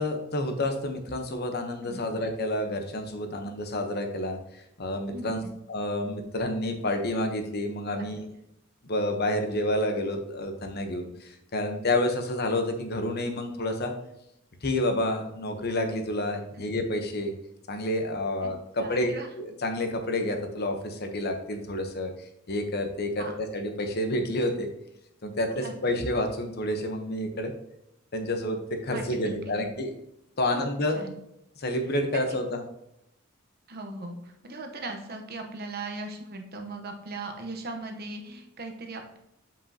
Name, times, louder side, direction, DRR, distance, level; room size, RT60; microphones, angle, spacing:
voice 1, 0.0-4.4 4.8-5.4 5.7-8.2 8.9-13.9 14.6-17.3 17.7-22.1 22.5-24.7 25.2-27.5 28.1-29.9 30.4-31.0 31.6-32.6, left 1 dB, 55° left, 5 dB, 1.0 m, -29 dB
voice 2, 5.1-5.5 7.9-8.1 18.4-18.5 18.8-19.3 23.2-23.4 25.6-25.7 28.9-29.7 30.5-30.7 30.9-31.1 32.3-32.4 33.7-39.2, right 2 dB, 50° right, 4 dB, 1.0 m, -38 dB
7.7 x 5.3 x 2.9 m, 0.81 s
head